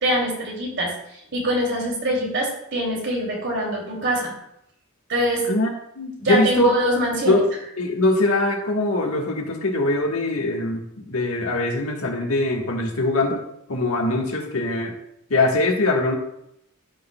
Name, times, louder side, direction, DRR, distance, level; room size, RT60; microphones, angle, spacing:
voice 1, 0.0-0.9 1.3-4.3 5.1-5.5 6.2-7.4, equal, 55° right, -2 dB, 2.6 m, -23 dB
voice 2, 6.0-6.8 7.2-7.4 7.8-13.4 13.7-14.9 15.3-16.1, left 2 dB, 75° left, 1 dB, 1.4 m, -22 dB
13.5 x 6.1 x 2.2 m, 0.78 s
head